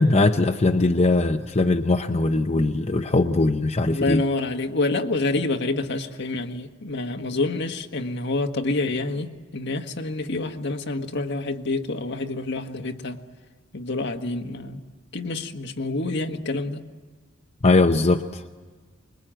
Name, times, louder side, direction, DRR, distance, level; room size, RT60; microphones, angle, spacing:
voice 1, 0.0-4.2 17.6-18.4, left 2 dB, 35° left, 0.7 m, -20 dB
voice 2, 3.8-13.2 13.7-14.8 15.1-16.9, left 2 dB, 60° left, 1.6 m, -27 dB
25.0 x 22.0 x 9.0 m
head